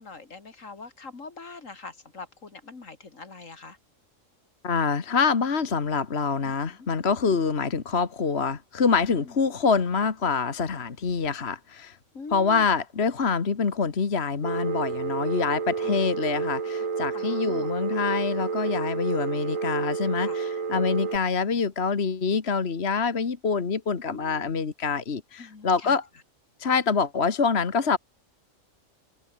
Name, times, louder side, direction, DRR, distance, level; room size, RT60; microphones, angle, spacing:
voice 1, 0.0-3.8 6.4-6.8 9.1-9.3 12.1-12.7 15.8-16.0 17.1-17.7 20.2-20.4 24.1-24.5 25.4-26.0, left 4 dB, 75° left, 3.1 m, -43 dB
voice 2, 4.6-12.0 12.3-26.1 26.6-28.0, left 5 dB, 55° left, 1.8 m, -26 dB
Telephone, 14.4-21.2, right 5 dB, 80° right, 2.4 m, -30 dB
open air
omnidirectional pair, 1.4 m